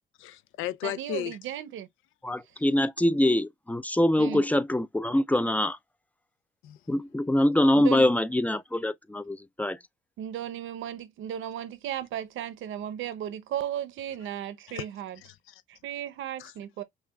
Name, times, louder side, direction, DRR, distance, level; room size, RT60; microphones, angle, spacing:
voice 1, 0.2-1.4 6.6-6.8 14.7-14.9 15.2-15.6 16.4-16.5, left 12 dB, 85° left, 0.4 m, -35 dB
voice 2, 0.8-1.9 4.2-4.4 7.7-8.1 10.2-15.2 15.7-16.8, right 11 dB, 80° right, 0.7 m, -35 dB
voice 3, 2.2-5.8 6.9-9.8, left 1 dB, 10° left, 0.3 m, -24 dB
5.6 x 2.3 x 2.2 m
cardioid pair, 90°, 20 cm